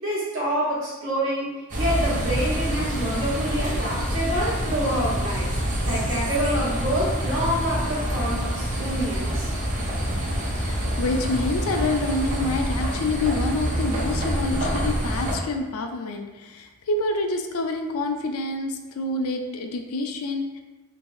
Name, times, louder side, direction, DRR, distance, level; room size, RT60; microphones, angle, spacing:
voice 1, 0.0-1.5 1.8-5.5 5.8-9.5, equal, 60° right, -7 dB, 1.3 m, -27 dB
sound 1, 1.7-15.4, equal, 35° right, 0.6 m, -26 dB
voice 2, 10.5-20.6, left 2 dB, 85° left, 5 dB, 0.4 m, -27 dB
3.2 x 3.1 x 2.6 m, 1.2 s
head